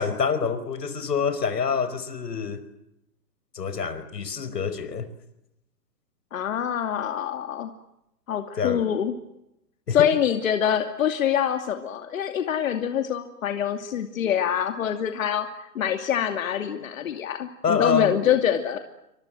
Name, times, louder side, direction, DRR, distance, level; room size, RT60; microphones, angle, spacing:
voice 1, 0.0-2.6 3.5-5.1 8.6-8.8 9.9-10.0 17.6-18.1, left 6 dB, 85° left, 12 dB, 5.0 m, -26 dB
voice 2, 6.3-7.7 8.3-9.1 9.9-18.8, left 9 dB, 55° left, 6 dB, 2.7 m, -25 dB
28.5 x 25.5 x 7.7 m, 0.84 s
hypercardioid pair, 150°, 48 cm